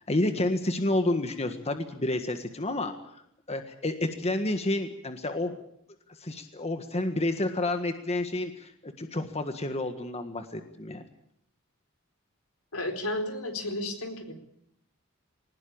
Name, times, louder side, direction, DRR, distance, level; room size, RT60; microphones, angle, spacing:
voice 1, 0.1-2.9 3.5-5.5 6.2-11.0, left 2 dB, 30° left, 7 dB, 1.7 m, -29 dB
voice 2, 12.7-14.3, left 1 dB, 85° left, 5 dB, 4.4 m, -32 dB
21.5 x 19.5 x 8.8 m, 0.73 s
head